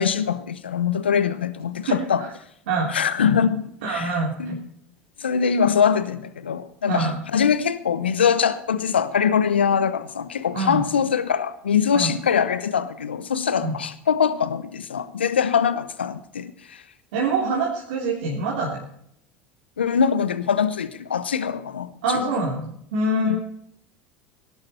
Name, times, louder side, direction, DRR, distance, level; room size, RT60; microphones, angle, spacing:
voice 1, 0.0-2.2 2.9-4.1 4.4-4.6 5.2-16.8 19.8-22.3 23.2-23.4, left 7 dB, 90° left, 0.8 m, -23 dB
voice 2, 1.9-2.3 2.7-2.9 3.8-4.6 6.9-7.2 10.5-10.8 11.9-12.1 13.6-13.7 17.1-18.8 22.0-23.4, right 2 dB, 75° right, 3.3 m, -25 dB
18.0 x 11.5 x 4.3 m
hypercardioid pair, 75°, 6 cm